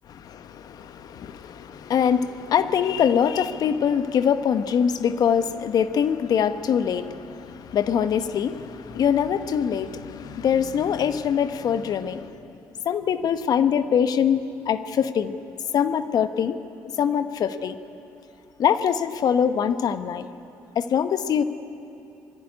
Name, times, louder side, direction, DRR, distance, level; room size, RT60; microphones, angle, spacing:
voice 1, 0.1-12.4 12.8-15.4 15.7-16.6 17.0-17.8 18.6-20.3 20.7-21.4, left 8 dB, 60° left, 11 dB, 1.0 m, -23 dB
21.5 x 15.0 x 9.7 m, 2.7 s
supercardioid pair, 60°, 7 cm